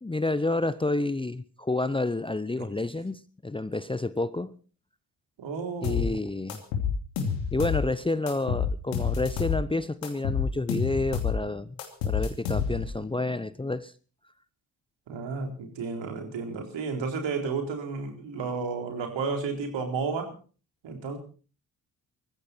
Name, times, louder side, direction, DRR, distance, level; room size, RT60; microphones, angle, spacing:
voice 1, 0.0-4.5 5.8-6.6 7.5-11.8 12.0-13.9, left 2 dB, 10° left, 16 dB, 0.8 m, -29 dB
voice 2, 5.4-6.2 15.1-20.3 20.8-21.2, right 4 dB, 60° right, 4 dB, 4.2 m, -32 dB
sound 1, 5.8-6.1 6.5-7.9 8.3-9.6 10.0-11.4 11.8-13.0, left 6 dB, 80° left, 2.8 m, -28 dB
20.5 x 15.0 x 4.5 m, 0.39 s
hypercardioid pair, 40°, 49 cm